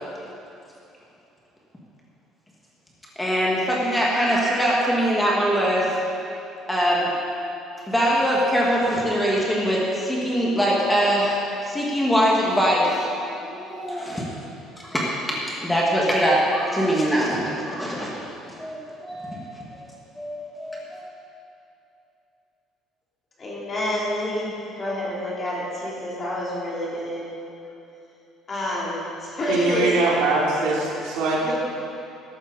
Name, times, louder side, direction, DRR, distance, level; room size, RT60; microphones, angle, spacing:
voice 1, 3.2-5.9 6.7-7.1 7.9-13.0 13.4-14.4 14.8-18.2 18.5-19.4 20.2-21.0, equal, 5° left, -5 dB, 1.8 m, -22 dB
voice 2, 23.4-24.5 24.8-27.3 28.5-29.8 31.4-31.5, left 1 dB, 25° left, -6 dB, 3.1 m, -28 dB
voice 3, 29.5-31.5, right 3 dB, 80° right, -4 dB, 3.2 m, -22 dB
14.0 x 12.5 x 4.1 m, 2.8 s
cardioid pair, 170°, 0 cm